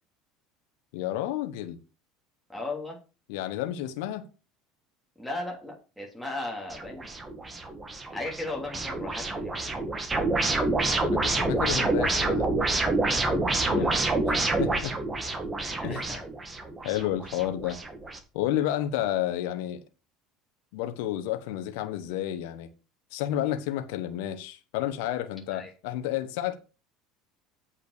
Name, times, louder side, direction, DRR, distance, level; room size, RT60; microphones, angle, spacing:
voice 1, 0.9-1.8 3.3-4.3 11.0-12.5 13.7-13.9 14.6-14.9 15.8-16.0 16.8-17.8 18.3-19.8 20.7-22.7 23.1-26.6, left 12 dB, 80° left, 1.1 m, -31 dB
voice 2, 2.5-3.0 5.2-7.1 8.1-9.7 13.7-14.0 15.6-16.2 25.5-25.7, left 2 dB, ahead, 3.1 m, -36 dB
sound 1, 6.7-18.2, right 2 dB, 15° right, 1.9 m, -28 dB
8.6 x 5.7 x 6.6 m
supercardioid pair, 120°, 0 cm